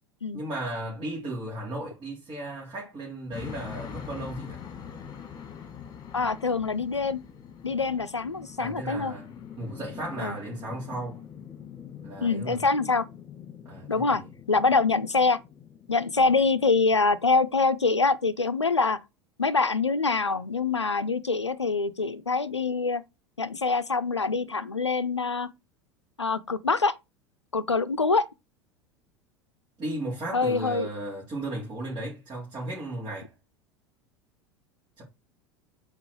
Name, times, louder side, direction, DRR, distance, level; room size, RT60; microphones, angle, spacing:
voice 1, 0.3-4.6 8.6-9.3 9.6-11.2 12.0-12.6 13.7-14.2 16.2-16.3 29.8-33.3 35.0-35.1, right 1 dB, 30° right, 3.5 m, -35 dB
sound 1, 3.3-17.6, left 8 dB, 30° left, 1.9 m, -44 dB
voice 2, 6.1-7.2 7.6-9.1 10.2-10.4 12.2-13.1 13.9-14.2 14.5-15.4 15.9-19.0 19.4-23.0 23.4-25.5 26.2-26.9 27.5-28.3 30.3-30.9, left 4 dB, 90° left, 0.5 m, -25 dB
5.9 x 4.4 x 4.7 m
figure-of-eight pair, 80°, 14 cm